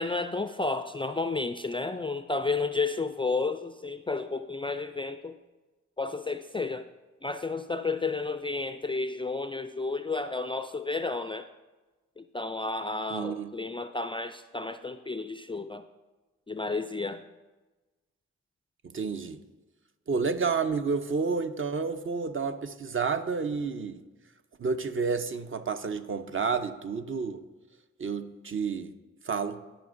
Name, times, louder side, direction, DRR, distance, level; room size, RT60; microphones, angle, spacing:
voice 1, 0.0-5.4 6.0-6.8 7.2-11.5 12.2-15.8 16.5-17.2, left 3 dB, 15° left, 9 dB, 0.3 m, -32 dB
voice 2, 13.1-13.5 18.9-19.4 20.1-24.0 24.6-27.4 28.0-28.9 29.3-29.6, right 5 dB, 40° right, 9 dB, 0.6 m, -30 dB
13.0 x 5.1 x 2.6 m, 1.2 s
supercardioid pair, 40°, 31 cm